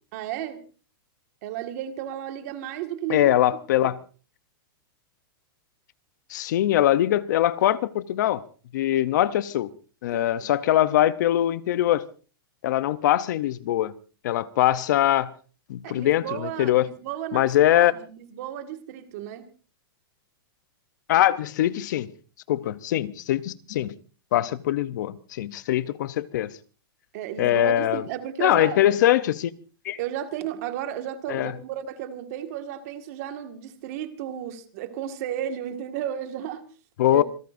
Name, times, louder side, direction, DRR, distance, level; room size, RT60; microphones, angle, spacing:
voice 1, 0.1-0.6 1.4-3.4 3.8-3.9 10.1-10.5 15.8-19.4 27.1-28.9 30.0-36.6 37.1-37.2, right 11 dB, 40° right, 1.8 m, -33 dB
voice 2, 3.1-4.0 6.3-8.4 8.7-9.7 10.0-12.1 12.6-13.9 14.2-15.3 15.7-16.9 17.3-17.9 21.1-22.1 22.5-23.9 24.3-26.5 27.4-28.0 28.4-29.5 29.8-30.0 31.3-31.5 37.0-37.2, left 13 dB, 50° left, 0.7 m, -22 dB
27.5 x 16.5 x 2.6 m
supercardioid pair, 165°, 12 cm